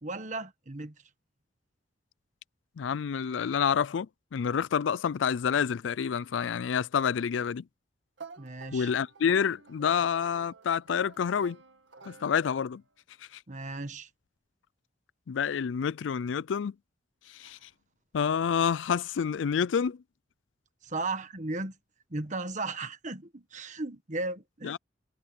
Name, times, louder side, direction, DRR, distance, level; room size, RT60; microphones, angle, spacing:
voice 1, 0.0-0.9 8.4-8.9 13.5-14.1 20.8-21.7 22.1-24.8, right 3 dB, 40° right, 1.6 m, -36 dB
voice 2, 2.8-7.6 8.7-11.6 12.1-12.8 15.3-16.7 17.3-17.7 18.1-20.0 24.6-24.8, left 7 dB, 90° left, 0.4 m, -28 dB
sound 1, 8.2-12.8, right 4 dB, 90° right, 2.0 m, -50 dB
head